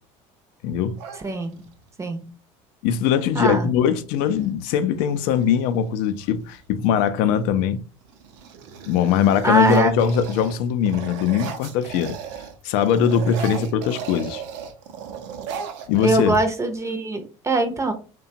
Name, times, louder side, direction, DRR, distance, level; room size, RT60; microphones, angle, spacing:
voice 1, 0.6-1.0 2.8-7.8 8.9-12.1 12.6-14.4 15.9-16.3, left 8 dB, 70° left, 0.4 m, -21 dB
sound 1, 1.0-1.9 3.6-3.7 4.0-4.5 5.1-6.6 7.2-7.6 8.0-12.6 12.8-16.8, right 7 dB, 75° right, 0.5 m, -37 dB
voice 2, 1.1-1.5 2.0-2.2 3.3-3.7 9.4-9.9 16.0-17.9, right 2 dB, 20° right, 0.5 m, -22 dB
2.8 x 2.2 x 2.6 m
supercardioid pair, 95°, 15 cm